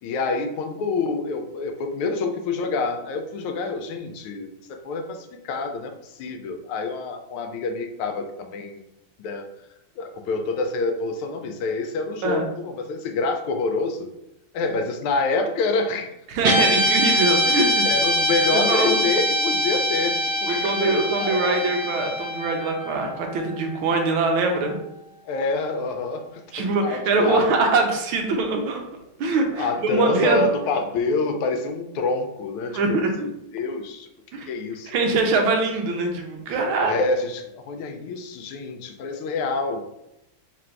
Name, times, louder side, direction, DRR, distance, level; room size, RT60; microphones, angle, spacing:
voice 1, 0.0-8.8 9.2-9.5 10.0-14.1 14.5-16.1 17.8-21.7 25.2-27.5 29.5-34.1 34.5-34.9 36.8-39.8, left 3 dB, 85° left, 6 dB, 1.5 m, -27 dB
voice 2, 16.3-17.9 18.5-19.0 20.5-24.8 26.5-28.8 29.2-30.4 32.7-33.3 34.3-34.5 34.9-36.9, right 3 dB, 80° right, 3 dB, 1.5 m, -23 dB
Guitar, 16.4-24.9, equal, 50° right, 0.7 m, -24 dB
3.9 x 2.6 x 4.4 m, 0.85 s
omnidirectional pair, 2.3 m